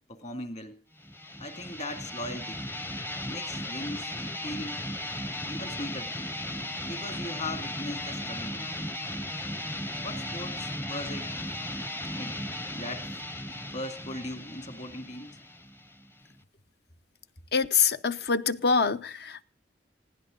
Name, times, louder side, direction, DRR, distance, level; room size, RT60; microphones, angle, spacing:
voice 1, 0.1-0.8 1.4-2.6 3.2-4.1 4.4-4.8 5.5-6.1 6.9-8.7 10.0-11.3 12.1-12.4 12.7-13.1 13.5-15.4, left 1 dB, 40° left, 2.3 m, -39 dB
sound 1, 1.0-16.4, left 1 dB, 15° left, 0.7 m, -36 dB
voice 2, 17.5-19.4, left 5 dB, 65° left, 0.8 m, -25 dB
20.0 x 16.0 x 3.8 m
head